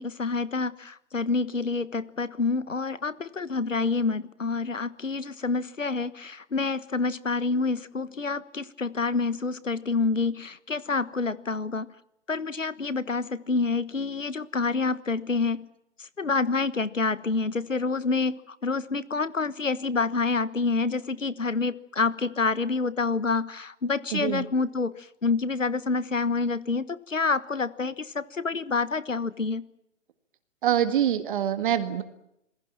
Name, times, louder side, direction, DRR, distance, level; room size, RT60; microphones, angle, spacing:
voice 1, 0.0-11.9 12.3-15.7 16.0-29.6, left 4 dB, 85° left, 17 dB, 1.4 m, -28 dB
voice 2, 24.1-24.4 30.6-32.0, right 10 dB, 45° right, 10 dB, 1.8 m, -25 dB
27.5 x 20.5 x 7.5 m, 0.80 s
figure-of-eight pair, 130°, 37 cm